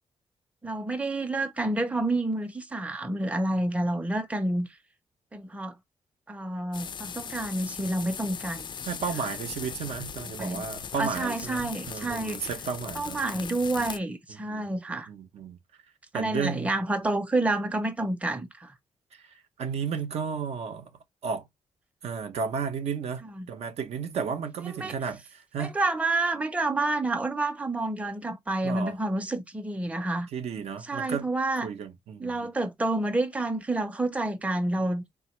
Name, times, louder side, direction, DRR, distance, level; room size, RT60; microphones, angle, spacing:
voice 1, 0.6-4.7 5.3-5.7 6.3-8.6 10.4-10.6 11.0-12.5 12.9-15.1 16.1-18.7 23.4-23.5 24.7-24.9 25.6-30.3 30.9-31.7 32.2-35.0, right 2 dB, 10° right, 0.6 m, -29 dB
sound 1, 6.7-14.0, left 7 dB, 45° left, 0.3 m, -39 dB
voice 2, 8.9-13.4 13.8-13.9 14.3-15.6 16.1-16.7 19.1-20.9 21.2-21.5 22.0-25.8 28.6-28.9 30.3-31.3 31.6-32.5, right 6 dB, 80° right, 0.6 m, -33 dB
3.4 x 2.2 x 2.9 m
cardioid pair, 75°, 11 cm